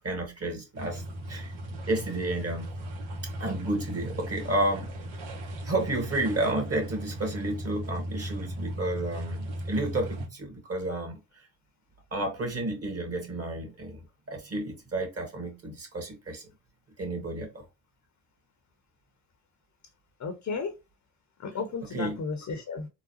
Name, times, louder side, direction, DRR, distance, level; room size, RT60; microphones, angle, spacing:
voice 1, 0.0-1.5 1.8-2.7 3.4-5.0 5.6-11.5 12.1-16.4 17.0-17.6 21.9-22.2, right 2 dB, 30° right, 1.8 m, -31 dB
sound 1, 0.7-10.3, equal, 70° right, 1.5 m, -37 dB
voice 2, 20.2-20.7 21.4-22.9, left 4 dB, 40° left, 0.8 m, -33 dB
3.8 x 2.3 x 2.7 m
hypercardioid pair, 55°, 47 cm